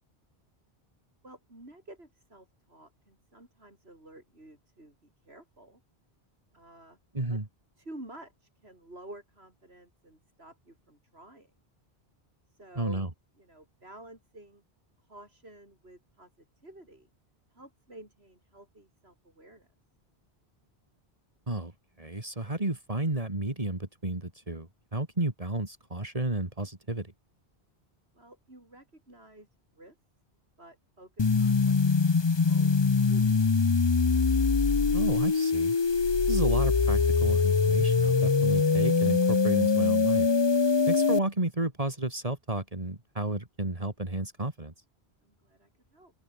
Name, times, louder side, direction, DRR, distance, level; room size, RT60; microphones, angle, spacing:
voice 1, 1.2-5.8 6.5-7.0 7.3-7.4 7.8-11.5 12.5-13.1 13.4-14.6 15.0-17.1 17.5-19.7 28.1-29.5 29.7-30.0 30.6-33.3 45.2-46.1, right 1 dB, 80° right, 7.0 m, -51 dB
voice 2, 7.1-7.5 12.8-13.1 21.5-21.7 22.0-27.1 34.9-35.8 36.3-40.3 40.9-44.7, right 2 dB, 35° right, 2.7 m, -32 dB
sound 1, 31.2-41.2, left 4 dB, 30° left, 0.7 m, -23 dB
open air
omnidirectional pair, 1.1 m